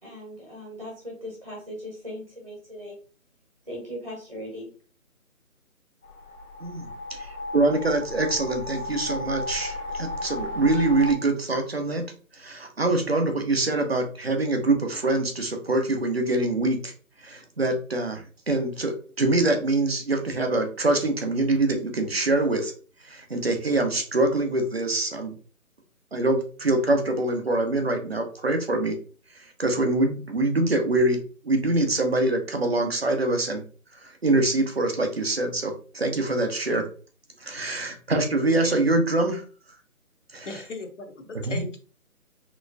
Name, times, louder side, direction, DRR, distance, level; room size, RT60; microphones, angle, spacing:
voice 1, 0.0-2.9 3.6-4.7, equal, 30° right, -3 dB, 1.0 m, -38 dB
sound 1, 6.0-11.1, left 1 dB, 85° left, 1.0 m, -34 dB
voice 2, 6.6-12.1 12.3-16.9 17.2-22.7 23.0-25.3 26.1-29.0 29.6-31.2 31.4-33.6 34.0-36.9 37.4-39.4 40.3-40.5 41.5-41.7, right 2 dB, 45° right, 5 dB, 0.6 m, -24 dB
voice 3, 40.4-41.8, left 3 dB, 55° left, 5 dB, 0.8 m, -38 dB
3.2 x 3.0 x 2.6 m, 0.39 s
hypercardioid pair, 180°, 43 cm